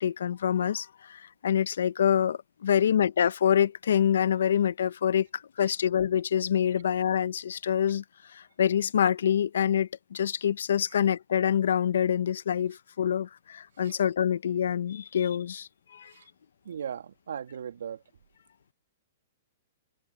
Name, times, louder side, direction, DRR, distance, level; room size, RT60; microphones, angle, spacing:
voice 1, 0.0-8.0 8.3-16.1, left 9 dB, 80° left, 0.9 m, -26 dB
voice 2, 16.6-18.0, right 8 dB, 80° right, 2.5 m, -38 dB
hypercardioid pair, 135°, 0 cm